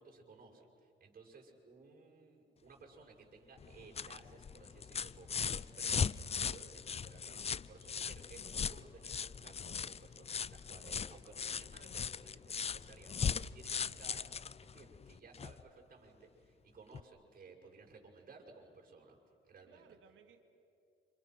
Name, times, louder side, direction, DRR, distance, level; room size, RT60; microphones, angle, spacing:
voice 1, 0.0-14.4 14.6-19.2 19.4-19.9, right 4 dB, 45° right, 1 dB, 6.8 m, -58 dB
sound 1, 3.6-15.6 16.9-17.0, left 6 dB, 30° left, 0.5 m, -39 dB
voice 2, 19.7-20.6, right 7 dB, 75° right, 5 dB, 2.5 m, -64 dB
30.0 x 28.0 x 6.2 m, 2.5 s
cardioid pair, 90°, 20 cm